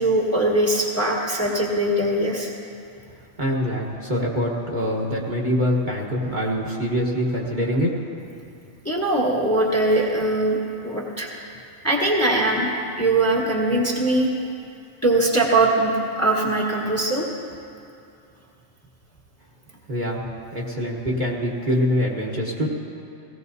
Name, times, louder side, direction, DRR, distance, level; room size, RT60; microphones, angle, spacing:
voice 1, 0.0-2.5 8.8-11.3 11.8-12.7 13.0-14.3 15.0-17.3, right 2 dB, 10° left, -3 dB, 1.2 m, -21 dB
voice 2, 3.4-8.0 19.9-20.2 20.5-22.7, equal, 35° right, -3 dB, 1.3 m, -24 dB
17.0 x 16.5 x 2.7 m, 2.6 s
omnidirectional pair, 1.4 m